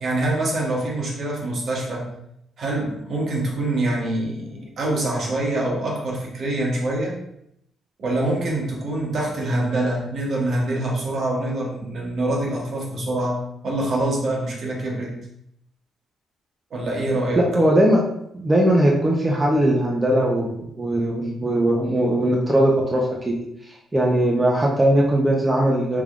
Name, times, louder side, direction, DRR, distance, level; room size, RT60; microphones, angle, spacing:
voice 1, 0.0-2.1 2.6-7.2 8.0-15.1 16.7-17.4, right 1 dB, 55° right, -2 dB, 1.1 m, -25 dB
voice 2, 17.4-18.0 18.3-23.3 23.6-26.0, right 1 dB, 20° right, -3 dB, 0.6 m, -19 dB
3.3 x 3.3 x 2.4 m, 0.77 s
cardioid pair, 90°, 0 cm